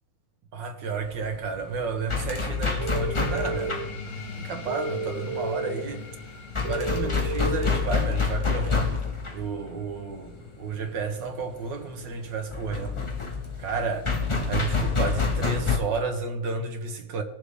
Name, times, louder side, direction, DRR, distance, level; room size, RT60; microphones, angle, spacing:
voice 1, 0.5-3.8 4.3-6.0 6.7-9.0 9.3-13.0 13.6-14.1 14.5-17.2, right 4 dB, 85° right, 2.0 m, -32 dB
sound 1, 1.0-15.8, left 5 dB, 20° left, 1.0 m, -28 dB
sound 2, 2.1-13.2, left 4 dB, 45° left, 1.6 m, -44 dB
sound 3, 2.8-3.7 4.7-5.7 6.6-7.7, right 4 dB, 50° right, 3.1 m, -31 dB
20.0 x 7.0 x 3.3 m
omnidirectional pair, 1.9 m